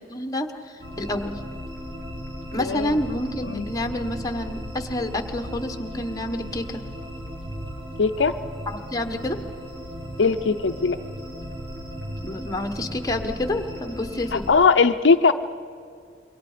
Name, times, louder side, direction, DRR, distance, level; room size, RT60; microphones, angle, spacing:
voice 1, 0.1-1.4 2.5-6.8 8.7-9.4 12.2-14.4, left 1 dB, 20° left, 6 dB, 1.3 m, -29 dB
sound 1, 0.8-14.5, equal, 75° right, 4.7 m, -36 dB
voice 2, 2.6-3.0 3.4-3.7 8.0-8.4 10.2-11.0 14.3-15.3, left 4 dB, 70° left, 8 dB, 0.6 m, -19 dB
27.5 x 23.0 x 5.1 m, 2.3 s
head